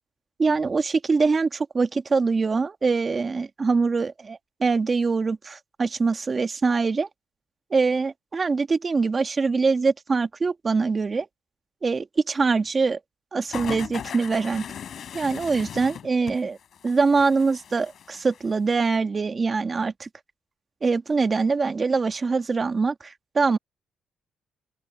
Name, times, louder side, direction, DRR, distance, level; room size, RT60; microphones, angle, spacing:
voice 1, 0.4-7.1 7.7-11.3 11.8-13.0 13.3-14.6 15.1-16.6 16.8-20.1 20.8-23.6, right 4 dB, 35° right, 1.6 m, -23 dB
sound 1, 13.5-18.5 18.9-19.0, left 8 dB, 60° left, 4.4 m, -38 dB
open air
cardioid pair, 90°, 0 cm